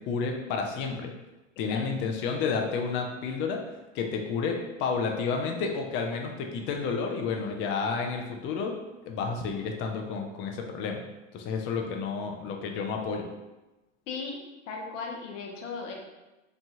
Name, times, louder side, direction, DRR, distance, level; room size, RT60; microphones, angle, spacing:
voice 1, 0.1-1.1 1.6-3.6 3.9-8.8 9.1-11.0 11.3-13.3, left 5 dB, 35° left, 3 dB, 0.4 m, -30 dB
voice 2, 14.1-14.4 14.7-15.9, left 4 dB, 90° left, 0 dB, 0.7 m, -36 dB
3.0 x 2.2 x 2.7 m, 1.1 s
supercardioid pair, 115°, 36 cm